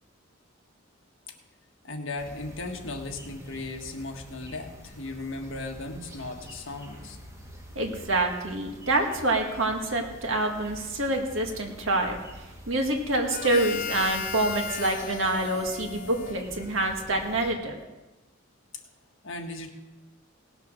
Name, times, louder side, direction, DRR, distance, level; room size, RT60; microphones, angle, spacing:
voice 1, 1.8-7.2 19.2-19.7, left 2 dB, 65° left, 3 dB, 1.6 m, -36 dB
sound 1, 2.2-17.5, equal, 15° right, 1.9 m, -47 dB
voice 2, 7.8-12.2 12.7-17.8, right 2 dB, 65° right, 2 dB, 2.0 m, -26 dB
Harmonica, 13.3-17.1, left 6 dB, 40° left, 0.5 m, -36 dB
18.0 x 7.0 x 6.4 m, 1.1 s
head